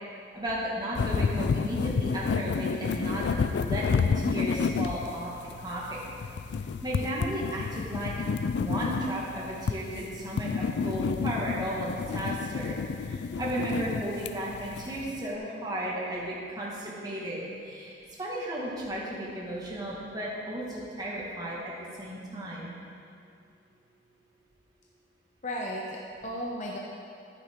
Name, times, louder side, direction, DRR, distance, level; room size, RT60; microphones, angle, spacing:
voice 1, 0.3-3.2 3.6-5.3 5.6-6.0 6.8-8.1 8.6-12.8 13.1-17.9 18.2-21.6 22.0-22.7, right 1 dB, 20° right, -5 dB, 1.6 m, -34 dB
sound 1, 1.0-15.2, left 5 dB, 60° left, 0.3 m, -30 dB
voice 2, 25.4-26.8, equal, 40° left, -2 dB, 0.7 m, -35 dB
9.8 x 9.4 x 3.6 m, 2.5 s
head